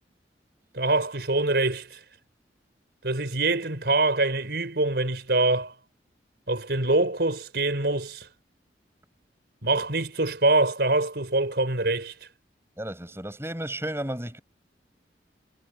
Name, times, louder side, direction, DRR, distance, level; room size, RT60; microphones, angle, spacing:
voice 1, 0.7-2.0 3.0-5.7 6.5-8.3 9.6-12.1, right 2 dB, 70° right, 4.0 m, -24 dB
voice 2, 12.8-14.4, right 1 dB, 15° right, 6.5 m, -33 dB
head